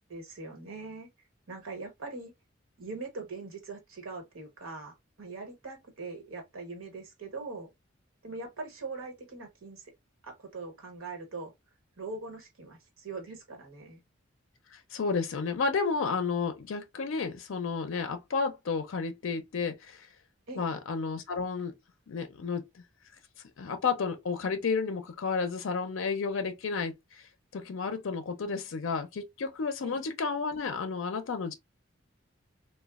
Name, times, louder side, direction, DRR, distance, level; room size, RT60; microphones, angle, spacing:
voice 1, 0.1-1.1 1.5-2.3 2.8-7.7 8.2-9.8 10.2-11.5 12.0-14.0 20.5-20.7 29.8-30.0, right 3 dB, 90° right, 1.1 m, -41 dB
voice 2, 14.7-20.1 20.6-21.7 22.1-22.6 23.6-31.5, left 5 dB, 75° left, 0.4 m, -32 dB
3.1 x 2.2 x 2.3 m
head